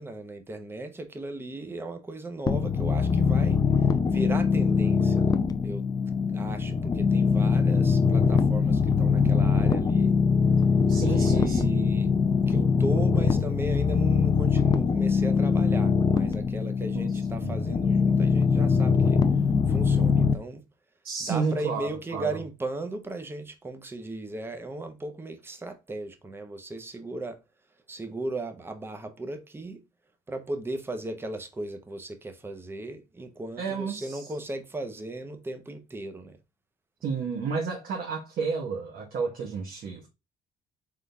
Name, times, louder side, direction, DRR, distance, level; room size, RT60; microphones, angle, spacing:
voice 1, 0.0-5.4 5.6-5.8 6.3-10.2 11.1-12.1 12.5-20.6 21.2-27.4 27.9-29.8 30.3-36.4, right 2 dB, 15° right, 0.8 m, -37 dB
sound 1, 2.5-20.3, left 5 dB, 25° left, 0.5 m, -23 dB
voice 2, 10.9-11.7 16.9-17.1 17.4-17.6 21.0-22.3 33.6-34.3 37.0-40.1, right 5 dB, 60° right, 1.3 m, -31 dB
4.0 x 3.8 x 3.4 m
cardioid pair, 110°, 17 cm